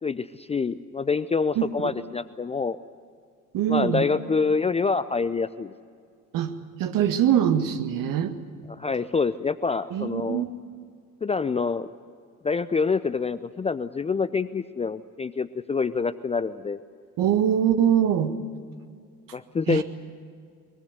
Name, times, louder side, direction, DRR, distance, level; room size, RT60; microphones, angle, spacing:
voice 1, 0.0-2.8 3.7-5.7 8.7-10.4 11.2-11.9 12.4-16.8 19.3-19.8, left 5 dB, 15° left, 14 dB, 0.6 m, -26 dB
voice 2, 1.6-1.9 3.5-4.0 6.3-6.5 6.8-8.3 9.9-10.5 17.2-18.3 19.7-19.8, right 10 dB, 50° right, 8 dB, 1.9 m, -23 dB
23.0 x 22.0 x 8.1 m, 2.1 s
figure-of-eight pair, 55°, 43 cm